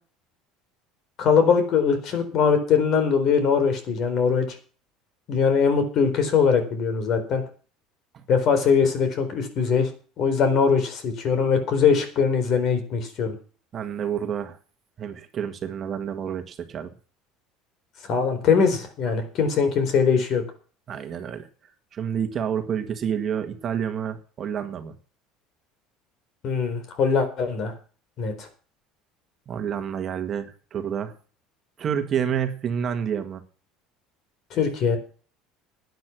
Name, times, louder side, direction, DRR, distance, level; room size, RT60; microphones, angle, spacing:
voice 1, 1.2-4.5 5.3-7.4 8.3-9.9 10.2-13.3 18.1-20.4 26.4-27.7 28.2-28.5 34.5-35.0, left 6 dB, 45° left, 9 dB, 4.2 m, -21 dB
voice 2, 13.7-14.6 15.0-16.9 20.9-21.5 21.9-24.9 29.5-31.1 31.8-33.4, right 8 dB, 35° right, 7 dB, 1.7 m, -29 dB
11.5 x 9.6 x 6.2 m, 0.39 s
cardioid pair, 135°, 0 cm